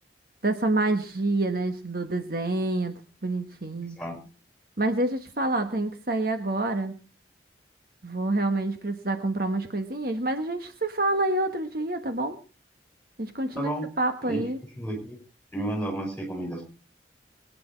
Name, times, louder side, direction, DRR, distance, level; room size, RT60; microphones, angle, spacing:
voice 1, 0.4-2.9 3.2-4.0 4.8-6.9 8.0-12.4 13.2-13.7 14.0-14.6, right 2 dB, 55° right, 7 dB, 1.4 m, -27 dB
voice 2, 13.6-13.9 14.2-14.4 14.8-15.2 15.5-16.6, right 1 dB, 5° left, 2 dB, 5.7 m, -31 dB
22.5 x 9.7 x 4.5 m, 0.34 s
head